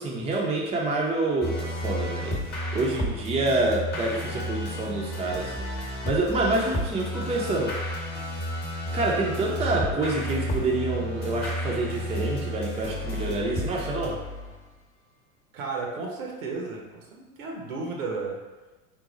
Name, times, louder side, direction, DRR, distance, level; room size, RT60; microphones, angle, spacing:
voice 1, 0.0-7.8 8.9-14.2, right 2 dB, 15° right, -3 dB, 0.6 m, -27 dB
sound 1, 1.4-14.7, equal, 25° left, 1.1 m, -32 dB
voice 2, 15.5-18.4, right 4 dB, 70° right, 0 dB, 1.0 m, -33 dB
3.8 x 2.3 x 3.9 m, 1.2 s
hypercardioid pair, 90°, 42 cm